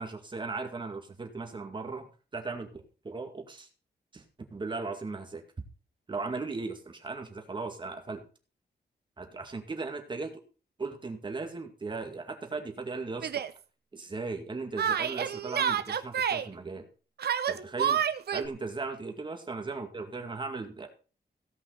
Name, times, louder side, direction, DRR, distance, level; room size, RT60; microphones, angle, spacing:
voice 1, 0.0-3.7 4.1-4.2 4.5-5.4 6.1-8.2 9.2-10.3 10.8-13.3 13.9-16.9 17.5-18.0 18.3-20.9, right 3 dB, 30° right, 5 dB, 2.1 m, -37 dB
Yell, 13.2-13.5 14.8-16.5 17.2-18.5, right 8 dB, 70° right, 0.9 m, -29 dB
16.5 x 5.9 x 5.7 m, 0.36 s
wide cardioid pair, 175°, 17 cm